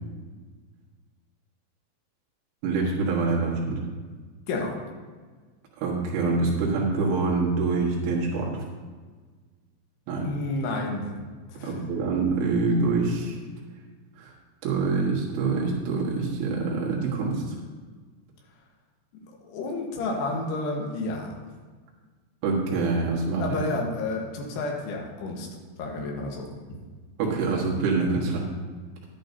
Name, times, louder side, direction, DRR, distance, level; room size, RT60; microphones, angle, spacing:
voice 1, 2.6-3.8 5.8-8.6 10.1-10.3 11.6-13.4 14.2-14.3 14.6-17.6 22.4-23.6 27.2-28.5, right 3 dB, 75° right, -3 dB, 3.9 m, -25 dB
voice 2, 10.2-11.2 11.5-11.8 19.5-21.3 23.4-25.5 25.8-26.8, left 2 dB, 70° left, 0 dB, 3.0 m, -31 dB
11.0 x 11.0 x 2.7 m, 1.4 s
omnidirectional pair, 5.7 m